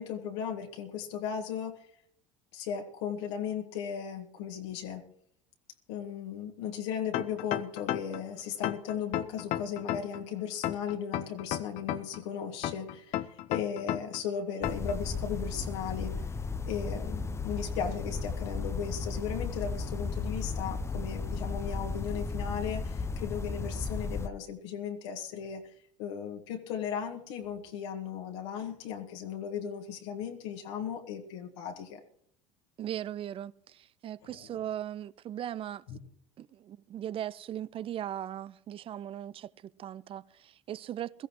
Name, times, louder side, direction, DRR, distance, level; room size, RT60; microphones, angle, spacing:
voice 1, 0.0-1.9 2.5-5.1 5.9-16.1 16.7-25.6 26.0-32.0 34.2-34.6 35.9-36.0, left 8 dB, 65° left, 1.8 m, -36 dB
sound 1, 7.1-8.2 8.6-10.2 10.6-12.2 12.6-14.2 14.6-14.9, left 13 dB, 50° left, 0.9 m, -32 dB
sound 2, 14.6-24.3, left 4 dB, 15° left, 0.7 m, -35 dB
voice 2, 32.8-35.8 36.4-39.5 39.8-41.3, right 11 dB, 35° right, 0.5 m, -38 dB
21.5 x 15.5 x 3.1 m
hypercardioid pair, 75°, 16 cm